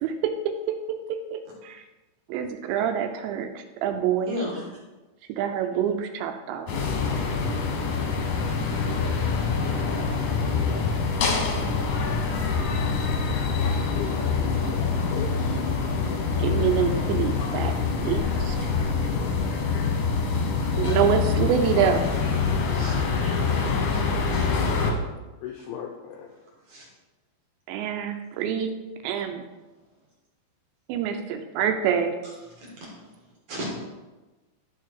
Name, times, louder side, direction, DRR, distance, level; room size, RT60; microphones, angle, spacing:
voice 1, 0.7-1.8 2.3-4.4 5.4-6.9 16.4-17.8 18.0-18.7 20.8-22.0 27.7-28.7 29.0-29.4 30.9-32.2, right 8 dB, 80° right, 6 dB, 2.8 m, -26 dB
voice 2, 4.3-4.7 22.7-23.6 23.9-24.0 24.3-24.5 26.7-26.8 33.5-33.7, left 1 dB, 55° right, -4 dB, 2.3 m, -34 dB
sound 1, 6.7-24.9, left 5 dB, 70° left, 2.0 m, -25 dB
voice 3, 13.9-15.6 25.4-26.3, left 8 dB, 85° left, 2 dB, 2.3 m, -37 dB
11.5 x 4.7 x 4.6 m, 1.2 s
omnidirectional pair, 5.4 m